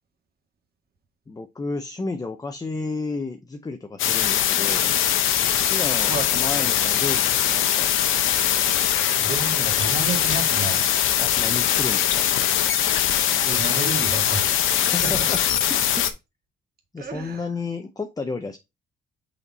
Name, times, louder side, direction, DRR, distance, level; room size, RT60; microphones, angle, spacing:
voice 1, 1.3-4.9 5.7-7.9 11.2-12.3 14.8-15.4 15.7-15.8 16.9-18.6, left 3 dB, 20° left, 0.6 m, -32 dB
sound 1, 4.0-16.1, left 10 dB, 90° left, 0.8 m, -21 dB
voice 2, 9.2-10.8 13.4-14.6 15.0-15.3 17.0-17.5, right 4 dB, 50° right, 2.0 m, -30 dB
5.5 x 4.4 x 4.1 m
cardioid pair, 90°, 20 cm